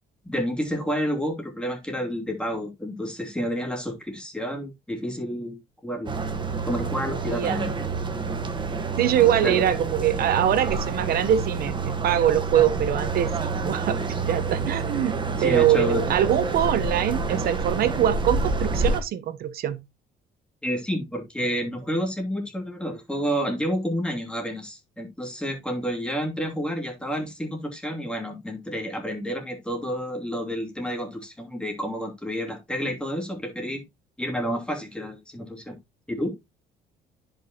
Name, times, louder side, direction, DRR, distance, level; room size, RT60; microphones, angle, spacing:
voice 1, 0.2-6.2 6.6-7.7 9.4-9.7 15.4-16.1 20.6-33.8 34.2-35.8 36.1-36.3, equal, 5° left, 2.8 m, -29 dB
sound 1, 6.1-19.0, right 4 dB, 30° right, 1.4 m, -28 dB
voice 2, 7.3-7.6 9.0-14.0 14.3-19.8, right 11 dB, 65° right, 1.0 m, -23 dB
10.5 x 5.6 x 2.9 m
cardioid pair, 110°, 17 cm